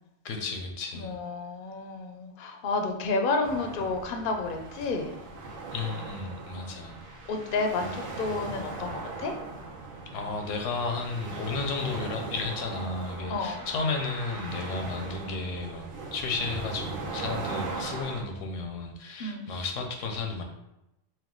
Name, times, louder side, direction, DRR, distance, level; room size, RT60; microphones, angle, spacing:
voice 1, 0.2-1.2 5.7-7.0 10.1-20.4, left 4 dB, 80° left, 4 dB, 1.0 m, -33 dB
voice 2, 0.9-5.1 6.6-6.8 7.3-9.3 13.3-13.6 19.2-19.5, left 3 dB, 55° left, 4 dB, 0.6 m, -31 dB
sound 1, 3.4-18.2, right 3 dB, 80° right, 1.1 m, -39 dB
4.5 x 2.2 x 3.7 m, 0.90 s
omnidirectional pair, 1.3 m